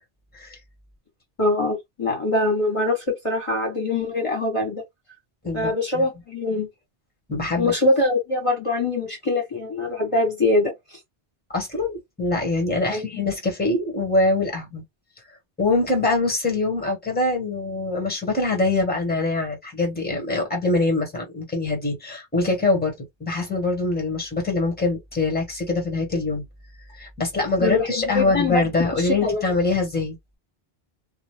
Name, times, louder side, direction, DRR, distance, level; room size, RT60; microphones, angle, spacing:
voice 1, 1.4-4.8 5.5-6.7 7.6-10.7 12.8-13.2 27.6-28.6 29.0-29.4, left 2 dB, 30° left, 1.1 m, -23 dB
voice 2, 5.4-6.0 7.3-7.7 11.5-14.8 15.6-22.9 23.2-26.4 26.9-30.2, left 2 dB, 10° left, 1.2 m, -24 dB
2.6 x 2.2 x 3.2 m
omnidirectional pair, 1.0 m